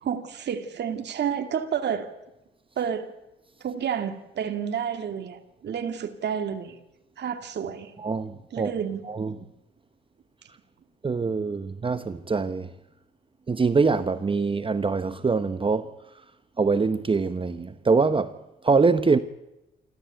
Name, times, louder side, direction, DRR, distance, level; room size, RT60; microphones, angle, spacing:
voice 1, 0.0-2.1 2.8-3.1 3.6-6.8 7.2-7.9 8.5-9.0, right 8 dB, 60° right, 2.5 m, -30 dB
voice 2, 8.0-8.7 9.0-9.3 11.0-12.7 13.5-15.9 16.6-18.3 18.6-19.2, right 4 dB, 25° right, 1.0 m, -24 dB
28.0 x 13.5 x 9.1 m
cardioid pair, 90°, 20 cm